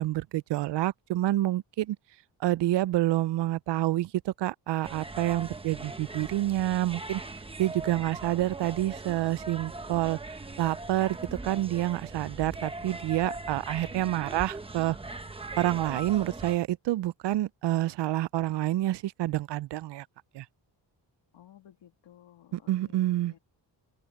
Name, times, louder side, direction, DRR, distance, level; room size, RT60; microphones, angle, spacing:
voice 1, 0.0-2.0 2.4-7.2 7.6-10.2 10.6-11.2 11.4-15.0 15.6-20.1 20.3-20.5 22.5-23.3, right 15 dB, 65° right, 0.5 m, -28 dB
sound 1, 4.8-16.6, right 2 dB, 10° right, 0.9 m, -40 dB
voice 2, 13.8-14.3 21.3-23.4, left 11 dB, 70° left, 1.7 m, -56 dB
open air
wide cardioid pair, 155°, 45 cm